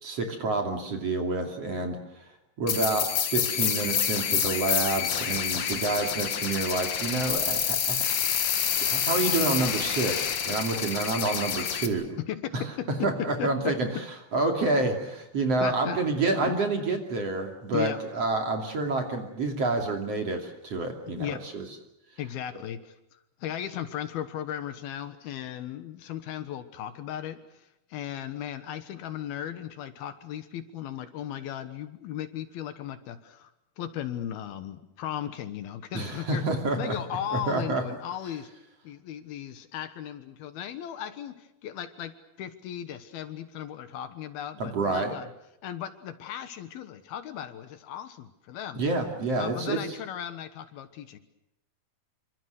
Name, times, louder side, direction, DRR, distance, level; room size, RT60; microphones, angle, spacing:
voice 1, 0.0-2.2 2.6-8.0 8.7-12.2 12.5-12.6 13.0-13.9 14.3-21.6 35.9-37.0 37.3-37.8 44.6-45.1 48.8-49.8, right 3 dB, 40° right, 4 dB, 3.3 m, -28 dB
sound 1, 2.7-11.9, left 8 dB, 50° left, 2.5 m, -28 dB
voice 2, 12.3-13.1 13.4-13.7 15.6-16.0 16.4-16.5 17.7-18.2 21.1-21.4 22.2-33.5 33.8-36.4 36.8-38.5 38.8-45.3 45.6-48.8 49.4-51.2, left 10 dB, 70° left, 11 dB, 3.0 m, -36 dB
27.0 x 25.0 x 6.5 m, 0.85 s
omnidirectional pair, 4.7 m